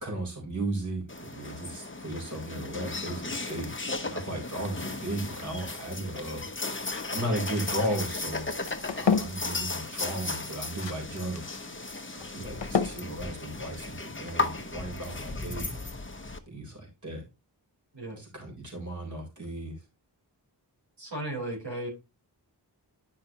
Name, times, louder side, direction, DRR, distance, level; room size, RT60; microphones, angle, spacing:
voice 1, 0.0-3.7 4.0-6.5 7.1-8.5 8.9-11.4 12.1-15.7 16.5-17.2 18.2-19.8, right 1 dB, 45° right, 0 dB, 3.7 m, -35 dB
sound 1, 1.1-16.4, left 3 dB, 30° left, 1.0 m, -36 dB
sound 2, 3.6-14.5, left 6 dB, 85° left, 0.8 m, -35 dB
voice 2, 21.0-21.9, right 1 dB, 75° right, -3 dB, 4.2 m, -35 dB
10.5 x 5.6 x 2.9 m, 0.26 s
wide cardioid pair, 55°, 43 cm